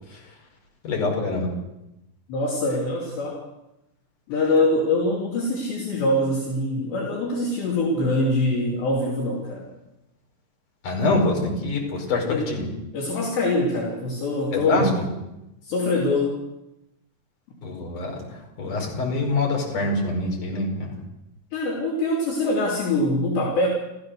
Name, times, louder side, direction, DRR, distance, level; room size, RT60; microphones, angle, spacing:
voice 1, 0.8-1.5 10.8-12.7 14.5-15.0 17.6-20.9, left 2 dB, 40° left, 0 dB, 6.4 m, -25 dB
voice 2, 2.3-3.4 4.3-9.6 12.3-12.5 12.9-14.9 15.6-16.4 21.5-23.7, left 2 dB, 60° left, -3 dB, 5.0 m, -24 dB
29.0 x 15.0 x 6.7 m, 0.90 s
omnidirectional pair, 5.8 m